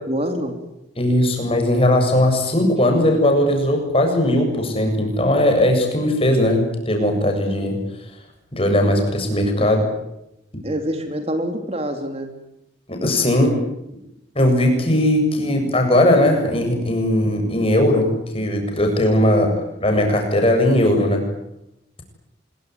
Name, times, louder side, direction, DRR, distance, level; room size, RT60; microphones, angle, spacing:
voice 1, 0.1-0.5 9.6-9.7 10.6-12.3 19.4-19.5, equal, 30° right, 6 dB, 3.1 m, -26 dB
voice 2, 1.0-7.8 8.5-9.9 12.9-13.5 14.3-19.5 19.8-21.2, left 1 dB, 30° left, 3 dB, 7.6 m, -18 dB
25.5 x 23.0 x 9.5 m, 0.85 s
head